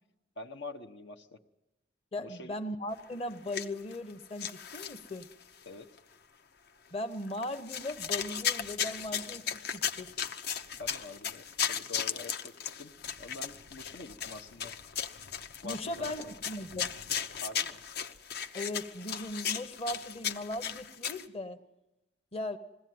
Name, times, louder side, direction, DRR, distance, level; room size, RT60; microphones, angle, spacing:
voice 1, 0.4-1.4 2.2-2.5 5.6-5.9 10.8-12.9 13.2-14.7 15.6-16.1 17.4-17.8, left 3 dB, 80° left, 5 dB, 1.1 m, -45 dB
voice 2, 2.1-5.3 6.9-10.1 15.6-16.9 18.5-21.6 22.3-22.6, left 1 dB, 35° left, 7 dB, 0.9 m, -38 dB
sound 1, 3.3-4.1 4.4-5.4 6.0-6.1 7.3-21.2, left 8 dB, 60° left, 0.8 m, -36 dB
21.0 x 16.5 x 9.5 m, 0.98 s
head